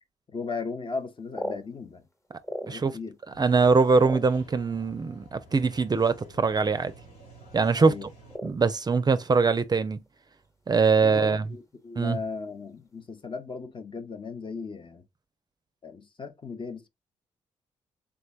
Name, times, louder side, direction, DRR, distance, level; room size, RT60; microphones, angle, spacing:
voice 1, 0.3-2.0 2.6-3.1 7.7-8.1 11.0-15.0 15.8-16.9, left 4 dB, 40° left, 0.7 m, -37 dB
sound 1, 1.0-3.1 3.5-4.9 5.7-5.8 6.1-6.4 6.7-7.1 7.4-7.6 8.3-9.3 9.6-10.5 10.7-10.8 11.2-11.5 12.0-12.4, equal, 25° left, 1.1 m, -39 dB
voice 2, 2.7-3.0 3.4-6.9 7.5-7.9 8.4-10.0 10.7-11.4 12.0-12.2, right 4 dB, 30° right, 0.4 m, -22 dB
sound 2, 3.3-8.4, right 1 dB, 85° left, 1.7 m, -51 dB
3.5 x 3.3 x 2.3 m
supercardioid pair, 50°, 13 cm